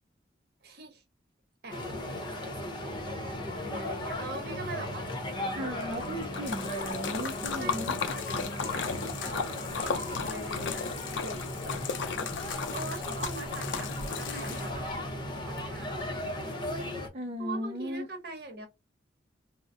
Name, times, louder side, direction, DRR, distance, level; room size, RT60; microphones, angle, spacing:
voice 1, 0.6-1.0 1.6-5.8 7.5-11.5 11.8-12.0 12.4-15.0 15.4-16.1 17.4-18.7, right 2 dB, 55° right, 1.0 m, -43 dB
sound 1, 1.7-17.1, left 1 dB, 25° left, 0.7 m, -36 dB
voice 2, 5.6-8.0 13.3-13.4 17.1-18.1, equal, 35° right, 0.5 m, -36 dB
Splash splatter, 5.8-14.9, left 5 dB, 85° left, 0.5 m, -35 dB
3.8 x 2.1 x 2.5 m
head